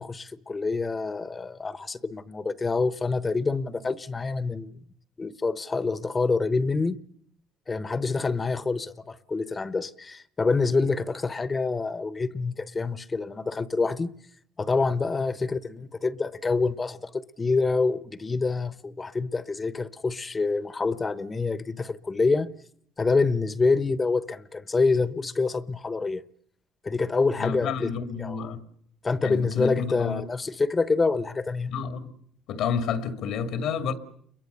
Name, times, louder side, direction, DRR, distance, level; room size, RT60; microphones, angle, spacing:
voice 1, 0.0-4.7 5.2-7.0 7.7-14.1 14.6-22.5 23.0-26.2 26.8-27.9 28.2-28.5 29.0-31.8, left 4 dB, 25° left, 1.0 m, -26 dB
voice 2, 27.4-28.6 29.2-30.2 31.7-32.1 32.5-33.9, left 6 dB, 80° left, 2.2 m, -30 dB
28.5 x 22.5 x 6.8 m
cardioid pair, 85°, 0 cm